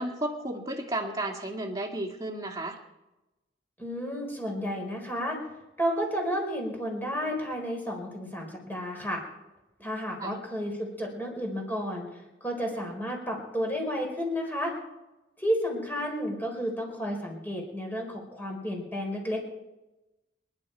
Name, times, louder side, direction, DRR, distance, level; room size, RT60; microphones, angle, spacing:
voice 1, 0.0-2.8 9.8-9.9 10.2-10.3, right 1 dB, 20° right, 0 dB, 2.3 m, -33 dB
voice 2, 3.8-5.4 5.8-9.2 9.8-14.8 15.4-19.4, equal, 10° left, 0 dB, 4.2 m, -32 dB
27.0 x 11.0 x 4.6 m, 1.0 s
head